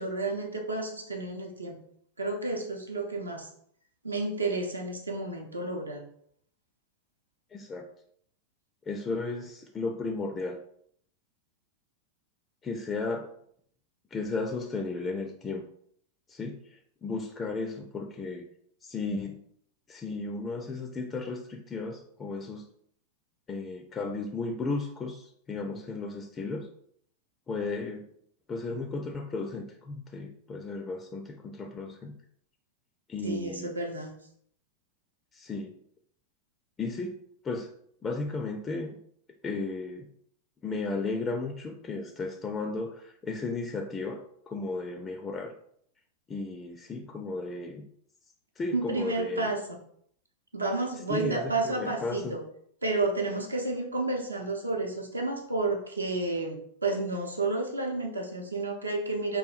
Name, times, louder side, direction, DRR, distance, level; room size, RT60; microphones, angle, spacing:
voice 1, 0.0-1.8 2.2-3.5 4.0-6.0 33.2-34.1 48.7-49.6 50.5-52.4 52.8-59.4, right 2 dB, 80° right, 2 dB, 0.7 m, -31 dB
voice 2, 7.5-7.9 8.9-10.6 12.6-13.3 14.1-15.6 16.3-18.5 18.8-19.4 19.9-22.7 23.5-26.7 27.5-28.1 28.5-32.2 33.1-33.7 35.3-35.7 36.8-37.2 37.4-37.7 38.0-39.0 39.4-40.1 40.6-44.2 44.5-45.5 46.3-47.9 48.6-49.5 51.1-52.4, left 3 dB, 20° left, 4 dB, 0.3 m, -34 dB
3.1 x 2.3 x 3.8 m, 0.67 s
figure-of-eight pair, 90°, 0 cm